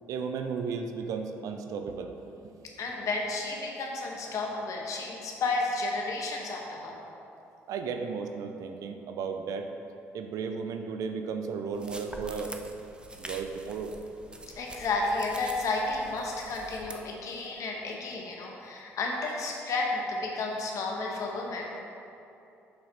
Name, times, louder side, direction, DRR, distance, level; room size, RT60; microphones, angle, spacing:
voice 1, 0.1-2.1 7.7-9.7 10.1-12.6 13.2-13.9, right 5 dB, 65° right, 6 dB, 0.6 m, -34 dB
voice 2, 2.8-7.0 14.6-21.7, left 3 dB, 60° left, 0 dB, 1.3 m, -32 dB
sound 1, 11.7-16.9, right 2 dB, 15° right, 0.7 m, -45 dB
6.8 x 5.7 x 4.1 m, 2.8 s
hypercardioid pair, 55°, 6 cm